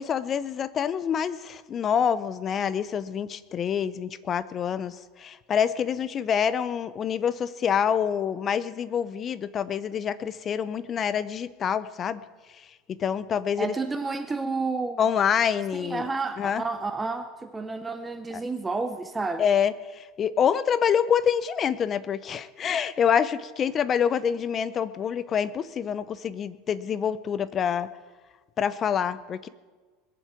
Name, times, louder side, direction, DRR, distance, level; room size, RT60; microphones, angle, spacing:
voice 1, 0.0-12.2 13.0-13.7 15.0-16.1 16.4-16.6 18.3-18.4 19.4-27.9 28.6-29.5, left 8 dB, 30° left, 16 dB, 0.7 m, -26 dB
voice 2, 13.6-15.0 15.7-19.4, right 3 dB, 10° right, 9 dB, 0.7 m, -30 dB
21.0 x 7.5 x 8.3 m, 1.4 s
supercardioid pair, 145°, 0 cm